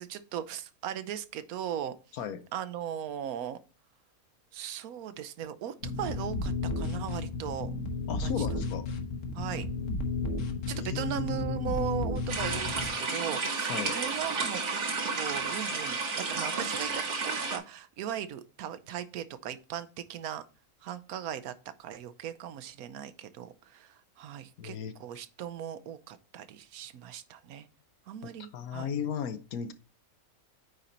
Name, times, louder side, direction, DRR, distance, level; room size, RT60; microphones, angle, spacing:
voice 1, 0.0-1.9 2.5-3.6 4.5-7.7 8.2-8.5 9.3-9.7 10.7-14.8 15.2-20.4 20.8-21.5 21.8-27.7 28.1-28.9, right 9 dB, 75° right, 1.2 m, -38 dB
sound 1, 5.8-12.9, left 3 dB, 60° left, 1.4 m, -33 dB
voice 2, 8.1-8.9 10.7-11.6 13.7-14.0 24.6-24.9 28.2-29.7, left 7 dB, 75° left, 1.2 m, -35 dB
sound 2, 12.3-17.6, right 4 dB, 55° right, 1.6 m, -32 dB
9.3 x 4.3 x 3.9 m
omnidirectional pair, 1.5 m